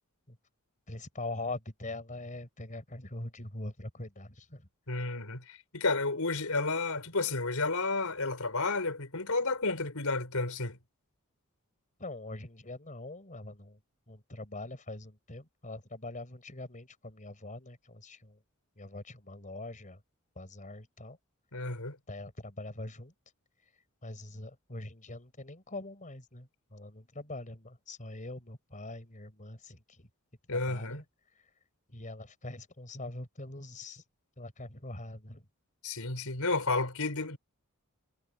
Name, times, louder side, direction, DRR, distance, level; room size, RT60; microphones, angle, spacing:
voice 1, 0.9-4.7 12.0-13.8 14.1-18.4 18.8-20.0 20.4-21.2 22.1-23.1 24.0-30.1 30.5-31.0 31.9-34.0 34.4-35.5, left 2 dB, 35° left, 4.2 m, -43 dB
voice 2, 4.9-10.8 21.5-22.0 30.5-31.0 35.8-37.4, left 3 dB, 80° left, 4.9 m, -31 dB
head